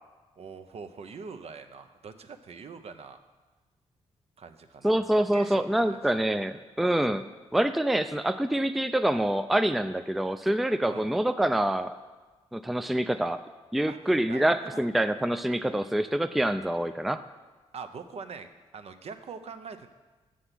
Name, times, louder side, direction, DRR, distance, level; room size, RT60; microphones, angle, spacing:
voice 1, 0.4-3.2 4.4-6.0 10.9-11.1 13.9-14.0 14.3-14.4 14.7-14.8 17.7-19.9, right 5 dB, 55° right, 9 dB, 0.6 m, -43 dB
voice 2, 4.8-7.2 7.5-11.9 12.5-13.4 13.7-17.2, right 1 dB, ahead, 10 dB, 0.4 m, -26 dB
6.8 x 6.3 x 5.8 m, 1.2 s
supercardioid pair, 55°, 12 cm